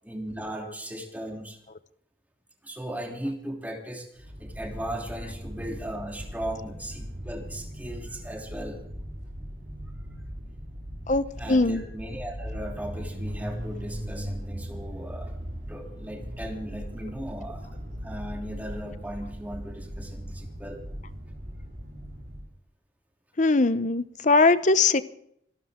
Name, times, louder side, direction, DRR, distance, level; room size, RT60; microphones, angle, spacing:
voice 1, 0.0-1.6 2.6-8.8 11.4-15.4 15.7-17.7 18.0-20.8, right 1 dB, 10° right, 1 dB, 3.1 m, -37 dB
sound 1, 4.2-22.5, equal, 55° right, 6.1 m, -38 dB
voice 2, 11.1-11.8 23.4-25.0, left 3 dB, 45° left, 14 dB, 0.9 m, -21 dB
25.5 x 12.0 x 3.8 m, 0.72 s
head